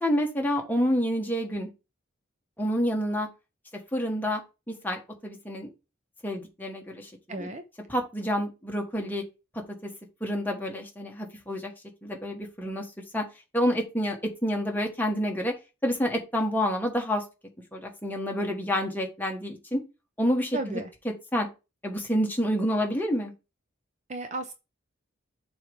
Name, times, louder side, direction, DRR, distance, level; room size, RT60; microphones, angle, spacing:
voice 1, 0.0-1.7 2.6-3.3 3.9-4.4 4.7-5.7 6.2-7.5 7.9-9.2 9.8-9.9 10.2-11.7 12.0-12.8 13.1-13.2 13.5-14.2 14.4-15.5 15.8-17.2 17.7-19.8 20.2-20.8 21.3-21.5 21.8-23.3, equal, 10° left, 1 dB, 1.4 m, -28 dB
voice 2, 7.3-7.6 20.5-20.9 24.1-24.5, right 2 dB, 35° right, 7 dB, 0.6 m, -34 dB
7.0 x 3.1 x 5.3 m, 0.28 s
head